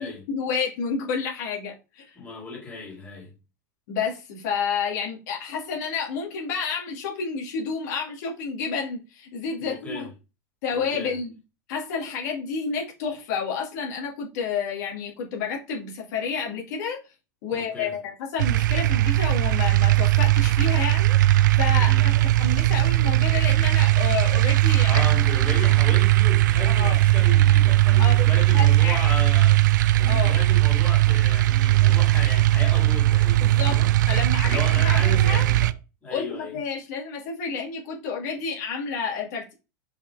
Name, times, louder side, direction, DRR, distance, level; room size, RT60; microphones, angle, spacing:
voice 1, 0.0-2.2 3.9-10.1 10.6-11.4 11.7-17.0 17.4-25.0 26.6-27.0 28.0-28.3 28.5-29.1 30.1-30.3 33.4-33.8 34.1-35.4 36.1-39.5, left 6 dB, 65° left, 2.2 m, -30 dB
voice 2, 2.2-3.4 9.6-10.1 10.7-11.1 17.5-17.9 21.7-22.0 24.9-29.7 30.0-33.9 34.4-35.7 36.0-36.6, left 3 dB, 15° left, 2.8 m, -35 dB
sound 1, 18.4-35.7, right 16 dB, 85° right, 0.5 m, -19 dB
5.7 x 4.9 x 3.4 m
supercardioid pair, 150°, 10 cm